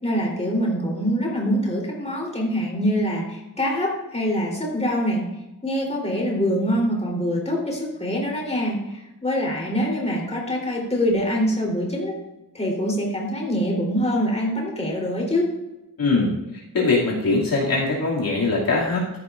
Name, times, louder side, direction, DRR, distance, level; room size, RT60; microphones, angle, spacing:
voice 1, 0.0-5.2 5.6-12.1 12.5-15.5, equal, 15° left, -3 dB, 3.5 m, -24 dB
voice 2, 16.0-16.3 16.7-19.2, left 3 dB, 55° left, -5 dB, 2.6 m, -21 dB
14.5 x 10.5 x 2.5 m, 0.99 s
wide cardioid pair, 140°, 42 cm